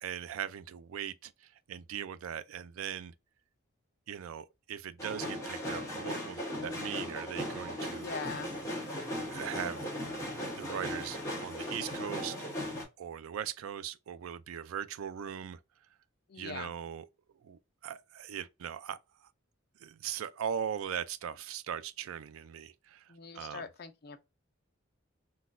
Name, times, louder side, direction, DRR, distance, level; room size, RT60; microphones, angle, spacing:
voice 1, 0.0-1.3 1.7-3.1 4.1-8.1 9.3-9.9 10.6-12.4 13.0-15.6 16.4-17.1 17.4-19.0 19.8-23.1 23.3-23.6, right 8 dB, 75° right, 0.3 m, -39 dB
sound 1, 5.0-12.8, left 1 dB, 15° left, 1.0 m, -37 dB
voice 2, 7.9-8.5 16.3-16.7 23.1-24.2, left 5 dB, 45° left, 0.4 m, -42 dB
3.9 x 2.2 x 2.4 m
head